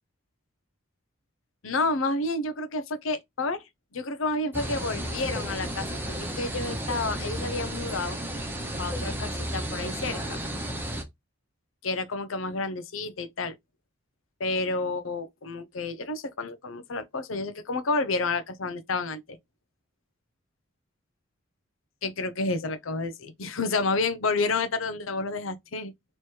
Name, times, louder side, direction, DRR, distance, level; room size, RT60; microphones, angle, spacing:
voice 1, 1.6-3.6 3.9-8.2 8.8-10.4 11.8-13.6 14.4-19.4 22.0-25.9, left 3 dB, 90° left, 0.7 m, -30 dB
sound 1, 4.5-11.0, right 1 dB, 10° right, 0.9 m, -33 dB
3.2 x 3.0 x 4.5 m
head